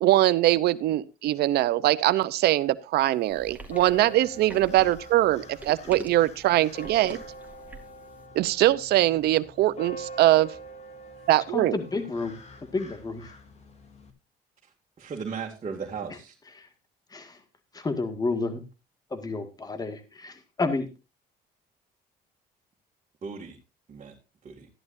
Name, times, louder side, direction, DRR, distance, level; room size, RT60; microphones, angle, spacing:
voice 1, 0.0-7.2 8.3-10.5 11.3-11.8, right 15 dB, 75° right, 16 dB, 0.8 m, -22 dB
sound 1, 3.3-8.0, right 2 dB, 10° right, 2.4 m, -43 dB
sound 2, 3.7-14.1, right 2 dB, 40° left, 2.5 m, -44 dB
voice 2, 11.5-12.3 12.7-13.2 17.1-17.3 17.7-18.6 19.1-20.3 20.6-20.9, left 3 dB, 20° left, 8 dB, 1.9 m, -30 dB
voice 3, 15.0-16.3 23.2-23.6 23.9-24.1 24.4-24.7, right 5 dB, 40° right, -1 dB, 2.4 m, -36 dB
14.0 x 11.0 x 2.7 m, 0.29 s
cardioid pair, 110°, 17 cm